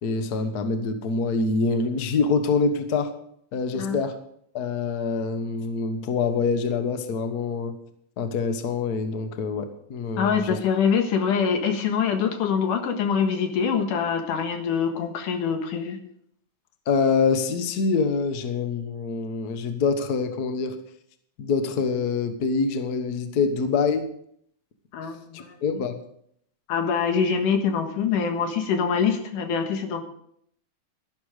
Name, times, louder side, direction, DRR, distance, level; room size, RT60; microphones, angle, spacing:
voice 1, 0.0-3.1 3.5-4.2 4.5-7.8 8.2-10.6 16.9-20.7 21.4-24.1 25.3-26.0, left 4 dB, 60° left, 8 dB, 1.0 m, -25 dB
voice 2, 10.2-16.0 24.9-25.6 26.7-30.0, left 6 dB, 80° left, 5 dB, 3.0 m, -24 dB
12.5 x 11.5 x 4.9 m, 0.69 s
omnidirectional pair, 3.6 m